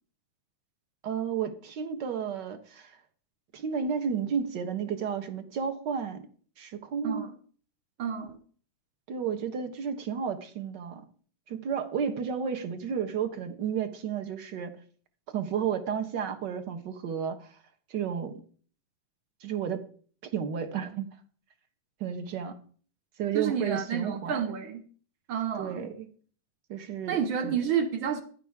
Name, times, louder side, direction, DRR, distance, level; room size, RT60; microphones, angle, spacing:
voice 1, 1.0-2.9 3.5-6.2 6.6-7.2 9.1-11.0 11.5-14.7 15.3-17.5 17.9-18.4 19.4-19.8 20.2-21.1 22.0-22.6 23.2-24.4 25.6-26.1 26.7-27.6, right 7 dB, 55° right, 1.3 m, -32 dB
voice 2, 8.0-8.4 23.3-24.8 25.3-25.9 27.1-28.2, right 7 dB, 80° right, 1.1 m, -30 dB
16.0 x 11.5 x 3.6 m
omnidirectional pair, 3.7 m